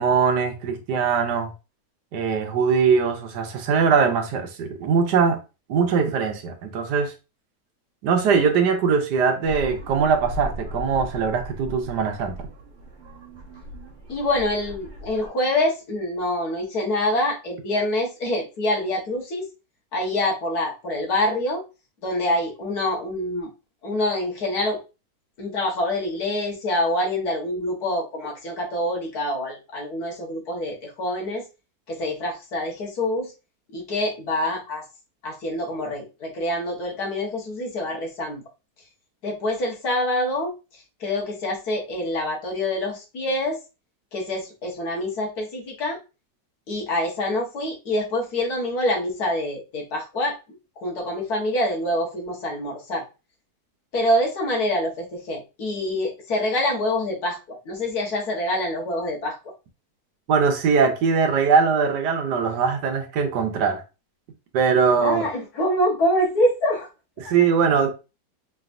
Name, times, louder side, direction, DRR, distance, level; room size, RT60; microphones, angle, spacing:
voice 1, 0.0-1.5 2.1-5.4 5.7-7.1 8.0-12.4 60.3-63.8 64.5-65.3 67.2-67.9, right 6 dB, 80° right, 1.4 m, -21 dB
sound 1, 9.4-15.3, left 1 dB, 45° right, 1.3 m, -37 dB
voice 2, 14.1-19.5 19.9-21.6 22.0-23.5 23.8-24.8 25.4-31.4 31.9-33.3 33.7-34.8 35.2-38.4 39.2-40.5 41.0-43.6 44.1-46.0 46.7-50.4 50.8-53.0 53.9-59.4 65.0-66.9, left 1 dB, 65° left, 1.7 m, -26 dB
4.0 x 3.4 x 2.5 m
omnidirectional pair, 1.8 m